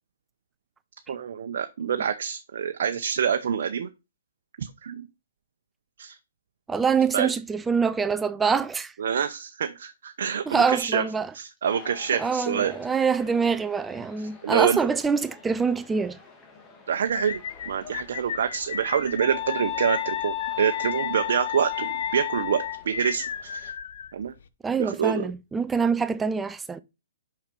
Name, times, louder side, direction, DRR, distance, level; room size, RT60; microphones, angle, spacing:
voice 1, 1.1-3.9 4.6-5.1 6.0-6.2 7.1-7.3 9.0-11.0 11.3-12.7 14.4-14.8 16.9-17.4 17.7-23.7 24.1-24.3 24.8-25.3, right 8 dB, 65° right, 0.8 m, -26 dB
voice 2, 6.7-8.9 10.5-11.3 12.1-16.2 24.6-26.8, right 5 dB, 10° right, 0.5 m, -25 dB
sound 1, 11.6-23.7, left 3 dB, 15° left, 1.6 m, -50 dB
sound 2, 17.1-24.5, left 8 dB, 60° left, 0.7 m, -36 dB
sound 3, 19.2-22.8, left 14 dB, 35° left, 1.2 m, -32 dB
5.7 x 5.7 x 5.3 m
hypercardioid pair, 145°, 0 cm